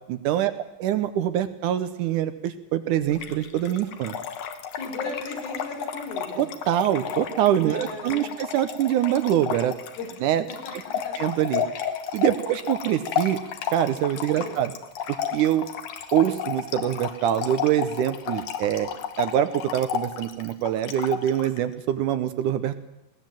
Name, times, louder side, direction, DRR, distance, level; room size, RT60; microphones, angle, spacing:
voice 1, 0.1-4.2 6.4-9.8 10.2-10.5 10.7-10.8 11.2-11.6 12.1-13.4 13.7-14.7 15.1-15.7 16.1-18.9 19.2-22.8, right 11 dB, 75° right, 11 dB, 2.1 m, -24 dB
Trickle dribble / Fill (with liquid), 3.1-21.6, left 8 dB, 65° left, 2.4 m, -32 dB
voice 2, 4.7-6.5 7.6-8.3 10.0-10.1 10.6-10.7 11.0-11.2 12.3-12.4 14.3-14.6, left 3 dB, 85° left, 1 dB, 6.1 m, -36 dB
20.5 x 17.0 x 7.6 m, 0.90 s
omnidirectional pair, 4.0 m